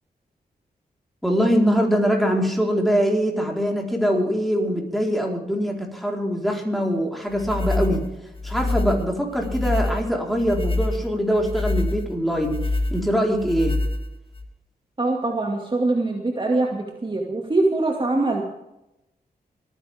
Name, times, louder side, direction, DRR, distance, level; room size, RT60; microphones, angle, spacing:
voice 1, 1.2-8.1 8.4-12.6 12.9-13.8, equal, ahead, 0 dB, 4.4 m, -23 dB
sound 1, 7.3-14.5, left 2 dB, 35° left, 1.9 m, -26 dB
voice 2, 15.0-18.4, right 2 dB, 30° right, 0 dB, 2.3 m, -23 dB
25.5 x 10.5 x 3.7 m, 0.90 s
cardioid pair, 70°, 16 cm